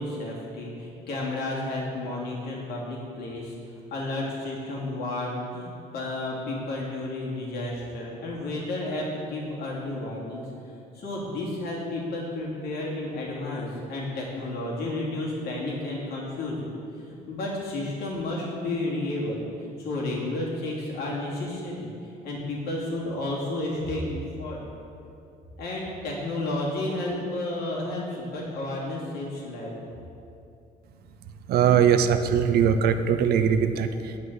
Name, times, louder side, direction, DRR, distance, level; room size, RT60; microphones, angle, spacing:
voice 1, 0.0-3.5 3.9-10.4 10.9-16.7 17.1-19.4 19.8-21.9 22.2-24.7 25.6-29.8, left 2 dB, 70° left, -4 dB, 2.8 m, -32 dB
voice 2, 31.5-34.2, right 8 dB, 70° right, 9 dB, 0.7 m, -21 dB
9.9 x 5.6 x 7.8 m, 2.7 s
cardioid pair, 110°, 17 cm